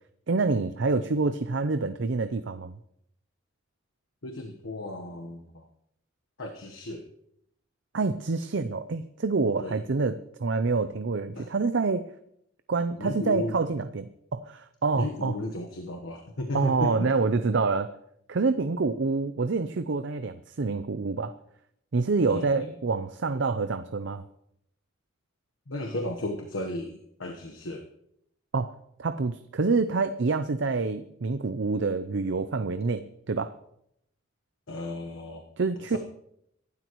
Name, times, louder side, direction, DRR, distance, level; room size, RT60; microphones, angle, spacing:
voice 1, 0.3-2.8 7.9-12.0 12.7-15.4 16.5-17.9 18.3-21.3 21.9-24.2 28.5-33.5 35.6-36.0, right 4 dB, 60° right, 10 dB, 0.6 m, -27 dB
voice 2, 4.2-5.7 6.4-7.0 9.6-9.8 11.3-11.5 13.0-13.6 14.9-17.1 22.3-22.7 25.7-27.9 34.7-35.4 35.9-36.0, left 1 dB, 75° left, 3 dB, 1.2 m, -34 dB
24.5 x 12.0 x 3.1 m, 0.74 s
head